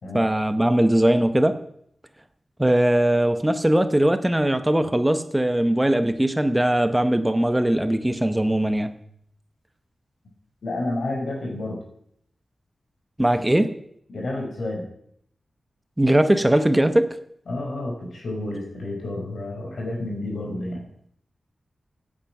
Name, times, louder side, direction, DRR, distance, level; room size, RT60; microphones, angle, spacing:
voice 1, 0.1-1.6 2.6-8.9 13.2-13.8 16.0-17.2, right 1 dB, 10° right, 0.8 m, -20 dB
voice 2, 10.6-11.8 14.1-14.9 17.5-20.9, left 2 dB, 75° left, 4.8 m, -30 dB
16.0 x 8.8 x 5.9 m
wide cardioid pair, 135°, 0 cm